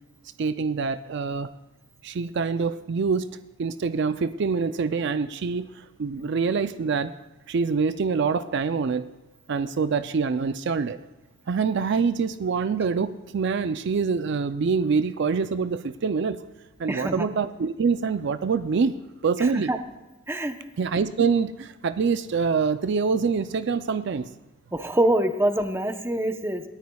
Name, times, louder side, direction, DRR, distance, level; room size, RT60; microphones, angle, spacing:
voice 1, 0.4-1.5 2.0-3.3 3.6-7.1 7.5-9.0 9.5-11.0 11.5-16.4 16.8-19.7 20.8-24.3, right 5 dB, 60° right, 12 dB, 0.4 m, -25 dB
voice 2, 16.9-17.3 19.4-19.8 20.3-20.5 24.7-26.6, right 1 dB, 10° right, 6 dB, 0.7 m, -25 dB
27.5 x 9.3 x 2.3 m, 1.1 s
head